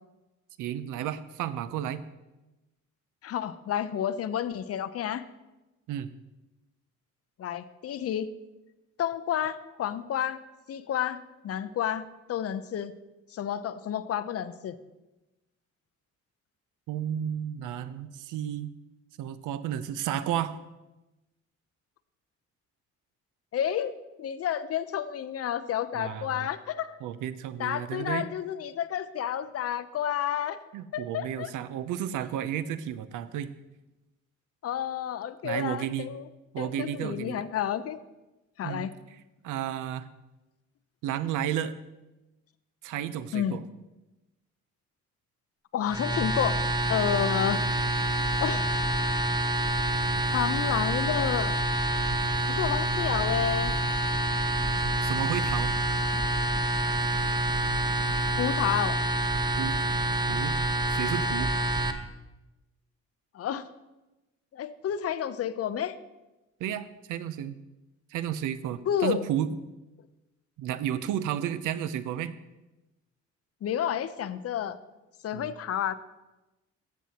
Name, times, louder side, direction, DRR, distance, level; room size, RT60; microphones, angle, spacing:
voice 1, 0.6-2.0 5.9-6.1 16.9-18.7 19.2-20.5 25.9-26.5 27.0-28.3 30.7-33.5 35.4-36.1 36.5-37.4 38.6-38.9 39.4-40.1 41.0-41.7 42.8-43.6 55.0-55.7 59.6-59.7 60.3-60.5 60.9-61.5 66.6-67.6 68.1-69.6 70.6-72.3 75.3-75.5, right 10 dB, 85° right, 14 dB, 0.6 m, -32 dB
voice 2, 3.2-5.2 7.4-8.3 9.0-10.4 10.7-12.9 13.3-14.8 23.5-23.9 24.2-27.0 27.6-30.6 30.9-31.5 34.6-36.2 36.6-38.0 38.6-38.9 43.3-43.6 45.7-46.6 46.9-47.7 48.4-48.7 50.3-51.5 52.5-53.7 58.4-59.0 63.3-63.6 64.5-66.0 68.9-69.3 73.6-74.8 75.2-75.9, left 10 dB, 50° left, 12 dB, 0.6 m, -30 dB
sound 1, 45.9-61.9, right 1 dB, 15° right, 0.7 m, -27 dB
13.5 x 7.3 x 2.8 m, 1.0 s
cardioid pair, 90°, 30 cm